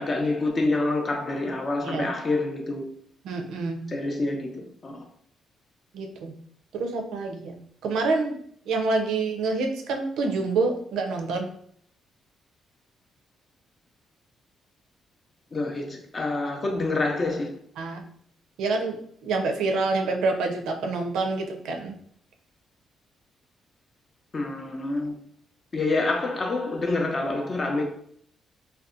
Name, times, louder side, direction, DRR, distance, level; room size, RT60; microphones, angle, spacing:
voice 1, 0.0-2.9 3.9-5.1 15.5-17.5 24.3-25.1 25.7-27.8, left 2 dB, 35° left, 0.5 m, -27 dB
voice 2, 3.2-3.8 5.9-6.3 6.7-7.5 7.8-8.4 8.7-11.5 17.8-18.0 18.6-21.9, right 3 dB, 85° right, 0.4 m, -27 dB
2.6 x 2.1 x 2.4 m
cardioid pair, 90°, 0 cm